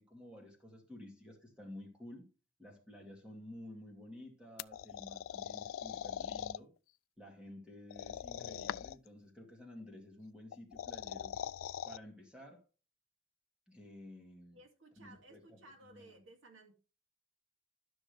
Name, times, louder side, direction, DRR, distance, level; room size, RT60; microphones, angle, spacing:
voice 1, 0.0-2.3 2.6-6.7 7.2-11.3 11.9-12.6 13.7-14.6 15.0-15.6 15.9-16.1, left 1 dB, 5° right, 2.3 m, -52 dB
sound 1, 4.6-6.6 7.9-9.1 10.5-12.0, left 9 dB, 85° left, 0.3 m, -42 dB
voice 2, 14.5-16.7, right 2 dB, 75° right, 2.2 m, -58 dB
12.5 x 6.3 x 3.3 m
head